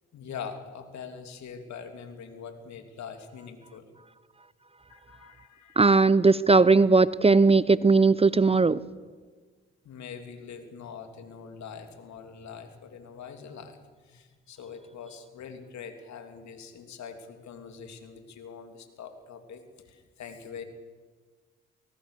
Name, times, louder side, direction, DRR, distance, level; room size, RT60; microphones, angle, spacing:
voice 1, 0.1-3.9 4.9-5.8 9.8-20.6, left 6 dB, 65° left, 7 dB, 3.0 m, -43 dB
voice 2, 5.8-8.8, right 3 dB, 20° right, 19 dB, 0.7 m, -19 dB
23.0 x 18.5 x 6.7 m, 1.5 s
hypercardioid pair, 50°, 30 cm